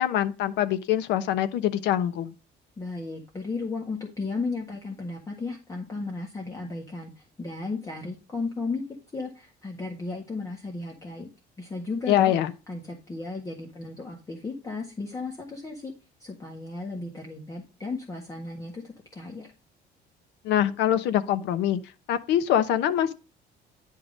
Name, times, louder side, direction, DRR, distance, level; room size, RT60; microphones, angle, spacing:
voice 1, 0.0-2.3 12.1-12.5 20.4-21.8 22.1-23.1, left 11 dB, 85° left, 1.0 m, -24 dB
voice 2, 2.8-8.8 9.1-11.3 11.6-12.3 12.7-15.9 16.2-19.5, left 3 dB, 20° left, 1.6 m, -34 dB
10.5 x 3.8 x 5.1 m
cardioid pair, 155°, 18 cm